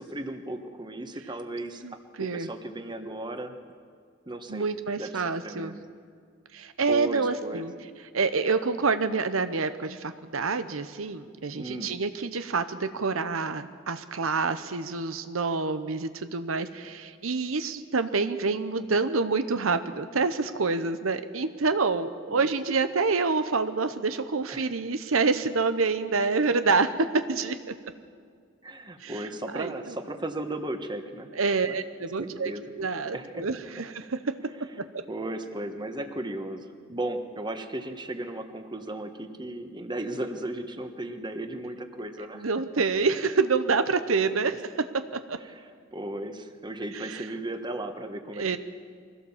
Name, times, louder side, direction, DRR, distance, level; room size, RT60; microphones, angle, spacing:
voice 1, 0.0-1.8 2.2-3.5 4.3-4.7 5.0-5.8 6.9-7.6 11.5-11.9 22.3-22.5 24.5-24.7 28.6-31.3 31.7-31.8 32.2-32.6 33.1-33.5 35.1-42.5 45.5-45.6 45.9-48.6, right 1 dB, 20° right, 6 dB, 1.4 m, -35 dB
voice 2, 1.8-2.5 4.5-5.7 6.5-7.7 8.1-27.7 29.0-29.3 29.5-29.9 31.3-34.2 42.3-44.5 45.3-45.4 46.9-47.3 48.3-48.6, right 4 dB, 90° right, 10 dB, 0.9 m, -27 dB
23.5 x 16.5 x 7.3 m, 2.1 s
head